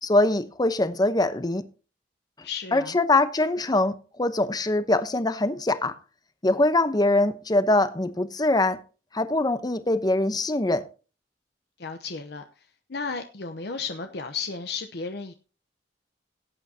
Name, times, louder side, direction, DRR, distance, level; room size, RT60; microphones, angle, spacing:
voice 1, 0.0-1.6 2.7-6.0 6.4-8.8 9.1-10.8, left 2 dB, 25° left, 0.9 m, -23 dB
voice 2, 2.4-3.0 11.8-12.4 12.9-15.3, left 4 dB, 65° left, 0.9 m, -33 dB
17.5 x 8.9 x 2.8 m
head